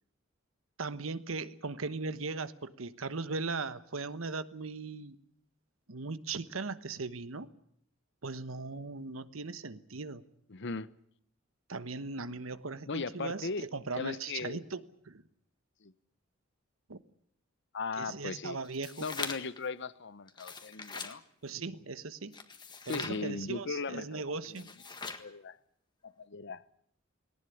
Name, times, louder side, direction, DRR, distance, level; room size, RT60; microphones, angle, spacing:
voice 1, 0.8-5.2 5.9-7.5 8.2-10.2 11.7-15.2 16.9-17.0 18.0-19.0 21.4-22.4 22.8-24.7, right 3 dB, 90° right, 1.2 m, -38 dB
voice 2, 10.5-10.9 12.9-13.7 13.9-14.6 15.8-15.9 17.7-18.6 19.0-21.2 22.9-24.6 25.0-25.6 26.0-26.6, left 4 dB, 60° left, 0.9 m, -38 dB
sound 1, 18.6-19.6 20.3-21.2 22.3-23.2 24.4-25.3, left 4 dB, 20° left, 1.7 m, -41 dB
19.0 x 18.5 x 10.0 m
head